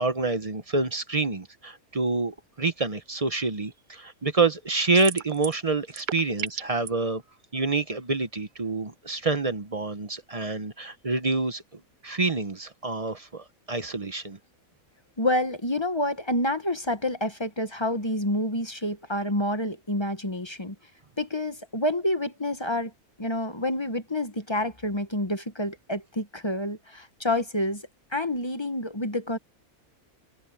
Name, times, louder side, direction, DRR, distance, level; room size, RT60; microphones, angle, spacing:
voice 1, 0.0-7.2 7.5-14.4, right 3 dB, 30° right, 0.8 m, -27 dB
sound 1, 4.9-5.6 5.9-6.9, right 9 dB, 85° right, 0.4 m, -33 dB
voice 2, 15.2-20.7 21.2-22.9 23.2-27.8 28.1-29.4, left 1 dB, 20° left, 1.1 m, -28 dB
open air
omnidirectional pair, 1.5 m